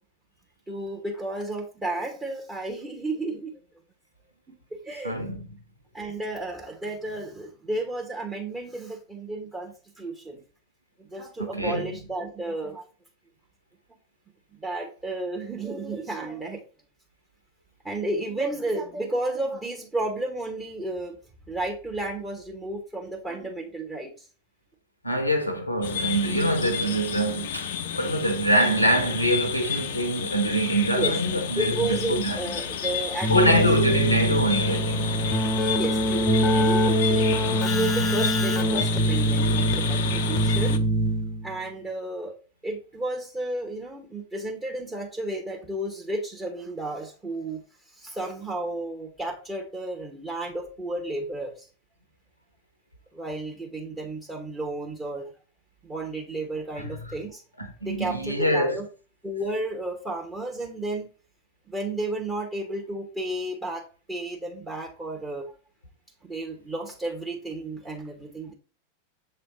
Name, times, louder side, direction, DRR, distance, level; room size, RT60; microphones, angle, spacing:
voice 1, 0.7-3.6 4.5-4.6 4.8-5.2 5.9-10.4 11.1-12.8 14.6-16.6 17.8-21.2 21.5-24.3 30.9-31.1 31.6-34.2 35.7-37.3 37.6-40.8 41.4-42.3 42.6-47.6 48.0-51.7 53.1-55.3 55.8-57.4 57.8-58.8 59.2-61.1 61.7-65.5 66.2-68.5, right 2 dB, 15° right, 1.1 m, -32 dB
voice 2, 5.0-5.4 11.5-11.9 25.0-32.4 33.3-35.1 56.8-57.0 57.6-58.8, right 1 dB, 85° left, 0.8 m, -24 dB
sound 1, 25.8-40.8, left 8 dB, 55° left, 0.5 m, -31 dB
Keyboard (musical), 33.2-41.6, right 1 dB, 25° left, 0.8 m, -24 dB
7.1 x 3.3 x 4.0 m
figure-of-eight pair, 90°, 0 cm